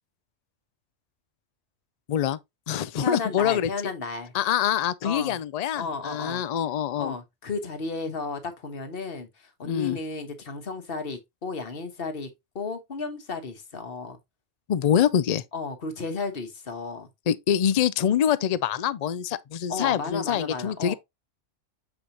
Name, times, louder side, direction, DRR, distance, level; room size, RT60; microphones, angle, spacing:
voice 1, 2.1-2.4 2.7-3.7 4.3-7.1 9.6-10.0 14.7-15.4 17.3-20.9, left 9 dB, 70° left, 0.3 m, -25 dB
voice 2, 3.0-4.3 5.0-5.4 5.7-6.4 7.0-12.3 12.5-14.2 15.5-17.1 19.7-20.9, left 4 dB, 50° left, 1.5 m, -33 dB
7.1 x 4.8 x 2.9 m
omnidirectional pair, 1.3 m